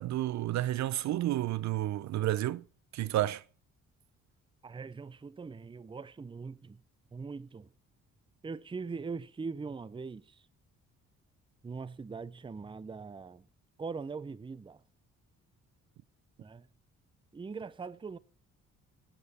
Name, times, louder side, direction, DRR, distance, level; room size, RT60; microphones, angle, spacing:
voice 1, 0.0-2.6 2.9-3.4, right 14 dB, 65° right, 0.6 m, -31 dB
voice 2, 4.6-6.8 7.1-7.7 8.4-10.4 11.6-13.5 13.8-14.8 16.4-16.7 17.3-18.2, right 4 dB, 15° right, 0.6 m, -41 dB
17.0 x 9.2 x 4.2 m
cardioid pair, 90°, 30 cm